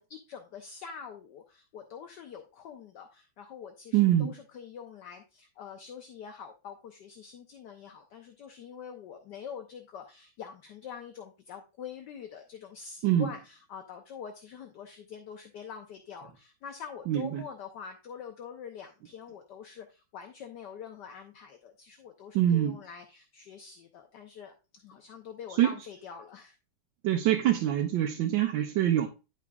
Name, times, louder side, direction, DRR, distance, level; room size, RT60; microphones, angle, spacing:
voice 1, 0.0-26.6, left 7 dB, 65° left, 1.3 m, -45 dB
voice 2, 3.9-4.3 13.0-13.3 17.1-17.4 22.3-22.8 25.6-25.7 27.0-29.1, right 12 dB, 75° right, 1.4 m, -24 dB
10.5 x 6.0 x 2.3 m
omnidirectional pair, 2.2 m